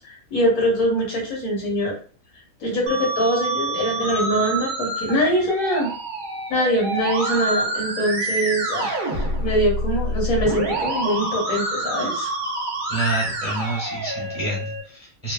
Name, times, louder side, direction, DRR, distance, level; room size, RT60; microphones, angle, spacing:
voice 1, 0.0-2.0 2.6-5.9 6.5-12.3, equal, 75° left, -2 dB, 1.5 m, -23 dB
Musical instrument, 2.9-14.8, right 1 dB, 50° right, 0.7 m, -27 dB
voice 2, 12.9-15.3, right 2 dB, 5° right, -6 dB, 1.0 m, -27 dB
3.1 x 2.2 x 2.2 m, 0.39 s
omnidirectional pair, 1.5 m